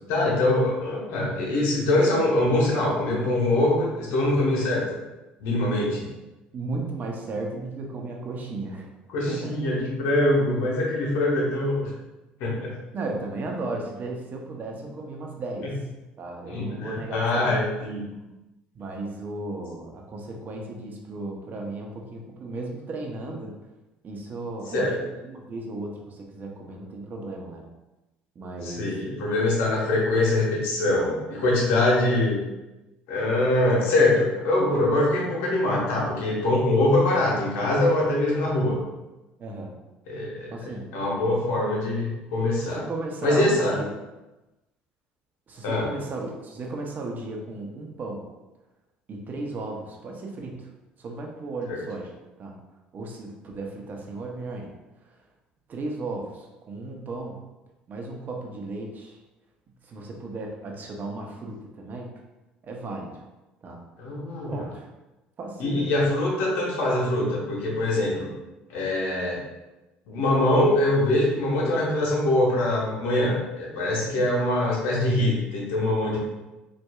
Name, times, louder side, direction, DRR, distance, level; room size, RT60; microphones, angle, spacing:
voice 1, 0.1-5.0 5.4-6.1 9.1-11.9 12.4-12.8 16.5-18.2 24.7-24.9 28.6-32.4 33.1-38.8 40.1-40.5 40.9-42.8 43.2-43.8 45.6-45.9 51.7-51.8 64.0-64.7 65.6-68.3 68.7-69.4 70.1-76.2, left 1 dB, 75° left, -3 dB, 1.0 m, -23 dB
voice 2, 6.5-8.9 9.3-9.6 12.9-15.7 16.2-17.6 18.7-23.5 24.0-27.6 28.4-28.9 39.4-39.7 40.5-40.9 42.6-43.9 45.5-48.2 49.1-50.7 51.0-52.1 52.4-52.5 52.9-54.7 55.7-57.4 57.9-59.2 59.8-62.1 62.6-63.2 63.6-63.8 64.4-64.9 65.4-65.9 74.0-74.2, right 2 dB, 45° right, 1 dB, 0.7 m, -35 dB
4.3 x 2.5 x 2.3 m, 1.0 s
supercardioid pair, 75°, 4 cm